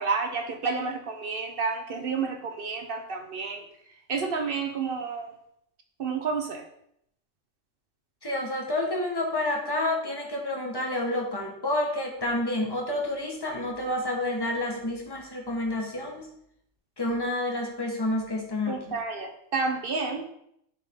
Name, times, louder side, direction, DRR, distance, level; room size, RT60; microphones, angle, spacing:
voice 1, 0.0-3.6 4.1-5.3 6.0-6.7 18.7-20.2, right 4 dB, 55° right, 5 dB, 0.9 m, -30 dB
voice 2, 8.2-16.3 17.0-19.0, left 1 dB, 20° left, 0 dB, 1.2 m, -29 dB
10.0 x 3.6 x 3.6 m, 0.75 s
omnidirectional pair, 1.3 m